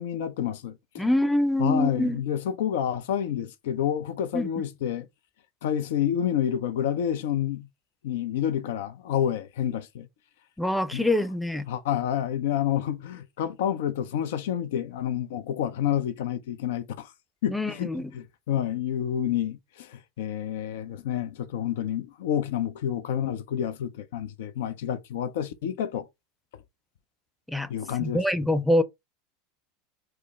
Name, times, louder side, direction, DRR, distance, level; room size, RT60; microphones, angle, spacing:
voice 1, 0.0-1.0 1.6-5.1 5.6-7.7 8.0-10.1 10.9-11.1 11.7-17.1 17.4-26.1 27.7-28.2, left 10 dB, 70° left, 0.6 m, -29 dB
voice 2, 1.0-2.2 4.3-4.5 10.6-11.7 17.5-18.1 27.5-27.7 28.0-28.8, left 1 dB, 5° left, 0.6 m, -25 dB
4.7 x 2.0 x 3.2 m
hypercardioid pair, 90°, 0 cm